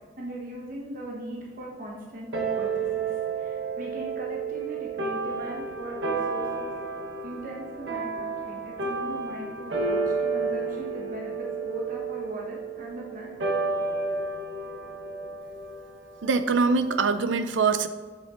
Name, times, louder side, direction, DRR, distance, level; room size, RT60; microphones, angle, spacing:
voice 1, 0.2-6.7 7.2-13.4, right 1 dB, 45° right, -2 dB, 1.1 m, -39 dB
sound 1, 2.3-17.1, right 4 dB, 70° right, 1.2 m, -31 dB
voice 2, 16.2-17.9, right 4 dB, 90° right, 11 dB, 0.5 m, -23 dB
7.6 x 7.2 x 3.7 m, 1.5 s
head